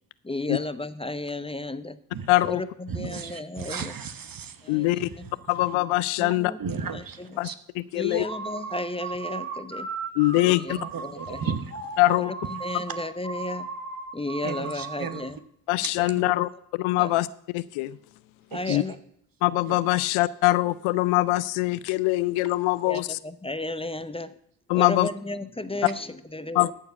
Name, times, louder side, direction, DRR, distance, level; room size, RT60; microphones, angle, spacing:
voice 1, 0.2-2.0 2.4-3.9 4.6-5.3 6.2-6.6 6.9-7.3 7.9-9.9 10.4-11.4 12.1-13.7 14.1-15.4 16.0-16.3 17.0-17.1 18.5-19.0 22.8-24.4 24.7-26.7, left 2 dB, 10° left, 13 dB, 0.8 m, -34 dB
voice 2, 2.3-2.6 4.7-5.1 5.5-6.5 7.4-7.5 7.9-8.2 10.2-10.8 12.0-12.3 15.7-16.5 16.8-17.3 17.5-18.0 18.7-18.8 19.4-23.2 24.7-25.1 26.6-26.7, left 19 dB, 80° left, 19 dB, 0.6 m, -23 dB
voice 3, 2.9-5.4 6.6-7.5 10.4-10.5 10.7-12.0 12.6-13.0 14.4-15.2 15.8-16.2 18.5-19.0 19.6-19.8, right 6 dB, 45° right, 12 dB, 1.3 m, -36 dB
sound 1, 8.1-15.3, right 4 dB, 25° right, 4.1 m, -36 dB
14.0 x 4.7 x 6.8 m, 0.70 s
hypercardioid pair, 45°, 49 cm